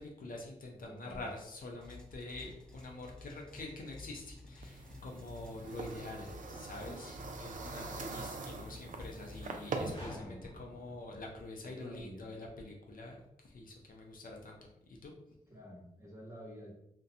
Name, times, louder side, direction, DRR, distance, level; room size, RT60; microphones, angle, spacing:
voice 1, 0.0-15.1, left 2 dB, 65° left, 0 dB, 0.5 m, -46 dB
voice 2, 0.8-1.3 10.0-10.5 11.6-12.3 15.5-16.7, equal, 20° right, -3 dB, 1.0 m, -50 dB
sound 1, 1.8-9.5, left 2 dB, 5° left, 0.5 m, -52 dB
sound 2, 4.6-9.9, right 4 dB, 55° right, 0.4 m, -43 dB
sound 3, 9.7-11.8, left 1 dB, 35° left, 1.3 m, -50 dB
2.3 x 2.2 x 2.7 m, 0.79 s
cardioid pair, 45°, 16 cm